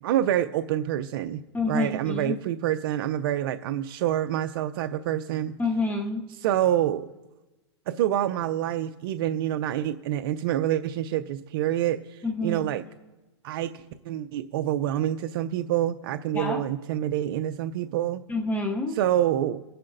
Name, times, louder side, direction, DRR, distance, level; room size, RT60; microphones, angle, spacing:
voice 1, 0.0-5.5 6.3-7.1 7.9-12.8 13.4-18.2 18.9-19.6, right 12 dB, 55° right, 8 dB, 0.5 m, -27 dB
voice 2, 1.5-2.4 5.6-6.2 12.2-12.6 16.3-16.6 18.3-19.0, left 2 dB, 10° left, 3 dB, 0.7 m, -27 dB
27.5 x 10.0 x 2.6 m, 1.1 s
hypercardioid pair, 145°, 15 cm